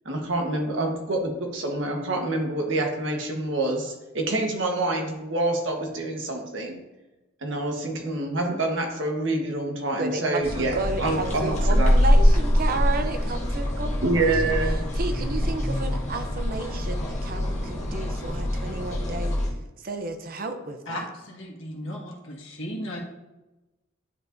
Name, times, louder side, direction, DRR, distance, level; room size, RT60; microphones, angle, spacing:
voice 1, 0.0-6.8 7.4-11.9 14.0-14.8, right 2 dB, 70° right, 2 dB, 1.2 m, -27 dB
voice 2, 10.0-14.6 14.9-19.4 19.8-21.1, right 3 dB, 45° right, 8 dB, 0.6 m, -32 dB
sound 1, 10.4-19.5, equal, 35° left, 1.2 m, -24 dB
voice 3, 20.9-23.0, left 1 dB, 75° left, -2 dB, 1.5 m, -36 dB
9.8 x 4.8 x 2.6 m, 1.0 s
head